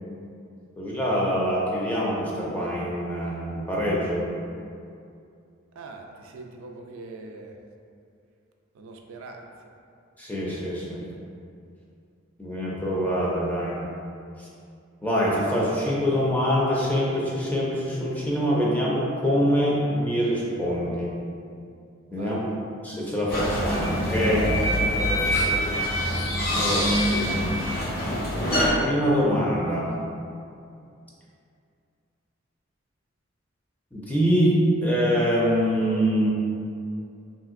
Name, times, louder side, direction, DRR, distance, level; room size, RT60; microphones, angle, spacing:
voice 1, 0.8-4.2 10.2-11.1 12.4-13.8 15.0-21.1 22.1-22.4 22.8-24.5 26.5-27.0 28.3-29.9 33.9-36.3, equal, 10° left, -5 dB, 0.4 m, -24 dB
voice 2, 5.8-7.5 8.7-9.5 22.1-22.6 26.6-27.0, right 3 dB, 85° right, 3 dB, 0.3 m, -42 dB
sound 1, 23.3-28.7, equal, 50° left, 0.6 m, -24 dB
3.1 x 2.7 x 2.5 m, 2.5 s
head